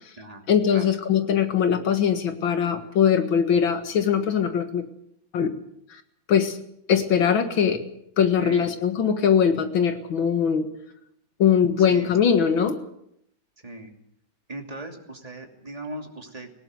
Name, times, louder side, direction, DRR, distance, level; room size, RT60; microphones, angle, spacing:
voice 1, 0.5-4.9 5.3-5.5 6.3-6.6 6.9-7.8 8.2-10.7 11.4-12.8, left 8 dB, 80° left, 8 dB, 2.4 m, -21 dB
voice 2, 8.4-8.7 11.8-12.1 13.6-13.9 14.5-16.5, right 2 dB, 20° right, 3 dB, 2.8 m, -38 dB
19.0 x 17.5 x 7.9 m, 0.76 s
omnidirectional pair, 2.1 m